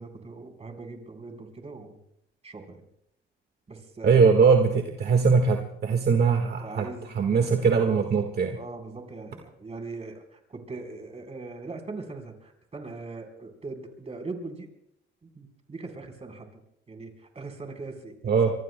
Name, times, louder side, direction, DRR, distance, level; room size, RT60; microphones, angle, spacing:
voice 1, 0.0-2.0 2.4-2.8 3.7-4.2 4.6-4.8 6.6-7.5 7.8-8.3 8.5-14.7 15.2-16.6 16.9-18.4, right 3 dB, 30° right, 3 dB, 4.0 m, -41 dB
voice 2, 4.0-6.9 7.1-8.6 18.2-18.5, right 5 dB, 55° right, 4 dB, 1.6 m, -21 dB
26.0 x 23.5 x 2.2 m, 0.76 s
cardioid pair, 90°, 20 cm